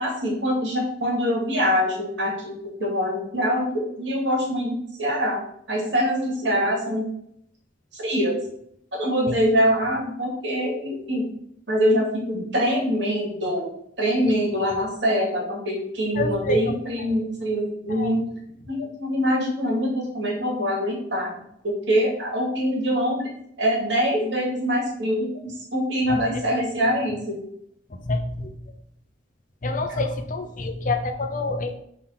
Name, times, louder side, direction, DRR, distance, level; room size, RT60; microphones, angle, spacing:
voice 1, 0.0-5.4 5.7-7.1 7.9-8.4 8.9-11.2 11.7-13.7 14.0-18.2 18.7-21.3 21.6-23.3 23.6-27.4, equal, 75° right, -2 dB, 2.5 m, -24 dB
voice 2, 16.1-16.7 17.0-17.2 17.9-18.1 26.1-26.4 27.9-28.5 29.6-31.8, left 2 dB, 45° left, 4 dB, 0.7 m, -27 dB
6.0 x 3.8 x 5.9 m, 0.72 s
head